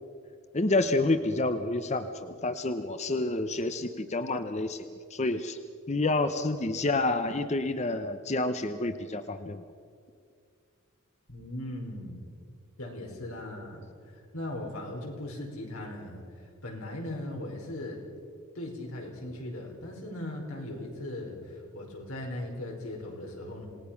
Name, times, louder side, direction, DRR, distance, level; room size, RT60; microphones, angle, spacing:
voice 1, 0.5-5.6 5.9-9.6, left 2 dB, 30° left, 9 dB, 0.7 m, -29 dB
voice 2, 11.3-12.2 12.8-13.9 14.1-18.0 18.5-23.7, left 1 dB, 90° left, 0 dB, 5.0 m, -38 dB
27.5 x 19.0 x 5.9 m, 2.2 s
head